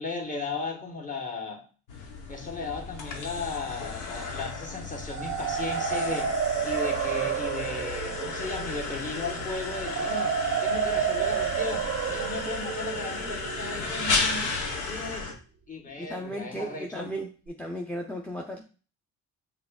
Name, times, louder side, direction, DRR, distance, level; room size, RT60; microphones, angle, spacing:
voice 1, 0.0-1.7 2.3-10.4 10.6-14.6 14.9-15.3 15.7-17.1, left 3 dB, 25° left, 0 dB, 1.4 m, -36 dB
sound 1, 1.9-15.3, left 3 dB, 85° left, 1.0 m, -34 dB
sound 2, 4.9-14.8, right 8 dB, 50° right, 0.5 m, -31 dB
voice 2, 16.0-18.6, equal, 5° left, 1 dB, 0.6 m, -35 dB
5.8 x 3.5 x 2.4 m, 0.37 s
cardioid pair, 90°, 30 cm